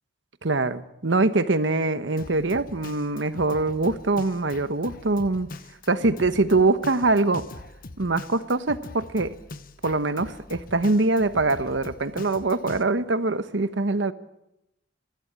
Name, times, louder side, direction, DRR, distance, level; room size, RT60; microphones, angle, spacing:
voice 1, 0.4-5.5 5.9-7.4 8.0-9.3 9.8-14.1, right 3 dB, 75° right, 12 dB, 1.1 m, -23 dB
Drum kit, 2.2-12.8, left 2 dB, 50° left, 1.0 m, -42 dB
22.0 x 15.5 x 8.8 m, 0.88 s
head